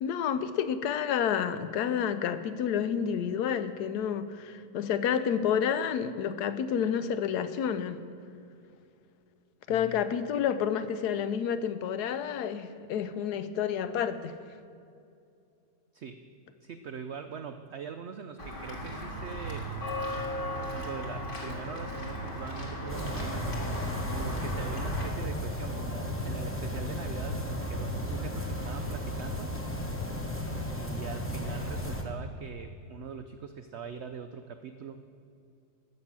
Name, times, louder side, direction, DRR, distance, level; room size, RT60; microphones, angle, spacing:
voice 1, 0.0-8.0 9.7-14.3, left 8 dB, 80° left, 12 dB, 1.2 m, -29 dB
voice 2, 9.7-10.0 15.9-16.3 16.6-19.7 20.6-29.6 30.8-35.1, right 6 dB, 80° right, 8 dB, 0.6 m, -42 dB
Walk footsteps / Bell, 18.4-25.1, equal, 35° left, 2.0 m, -36 dB
sound 1, 22.9-32.0, left 1 dB, 10° left, 0.7 m, -34 dB
13.0 x 6.4 x 7.4 m, 2.6 s
omnidirectional pair, 1.7 m